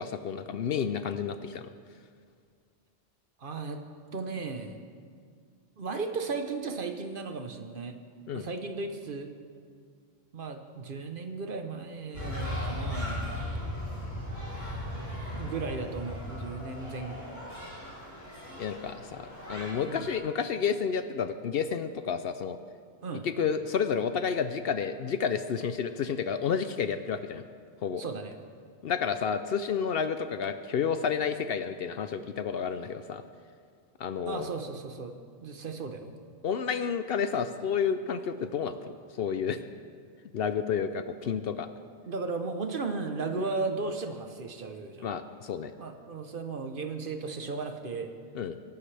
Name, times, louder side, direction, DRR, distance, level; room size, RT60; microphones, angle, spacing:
voice 1, 0.0-1.7 8.3-8.5 18.6-22.6 23.2-27.4 27.8-28.0 28.8-33.2 34.0-34.5 36.4-39.6 40.3-41.7 45.0-45.7 48.3-48.6, left 6 dB, 65° left, 10 dB, 0.7 m, -30 dB
voice 2, 3.4-3.8 4.1-4.8 5.8-7.9 8.3-9.3 10.3-13.3 15.3-17.3 19.9-20.1 23.0-23.3 28.0-28.4 34.3-35.1 35.4-36.1 42.1-45.1 45.8-48.1, right 4 dB, 50° right, 6 dB, 1.1 m, -35 dB
sound 1, 12.1-20.2, left 1 dB, 15° left, 3.8 m, -37 dB
22.5 x 11.5 x 3.4 m, 2.1 s
omnidirectional pair, 1.2 m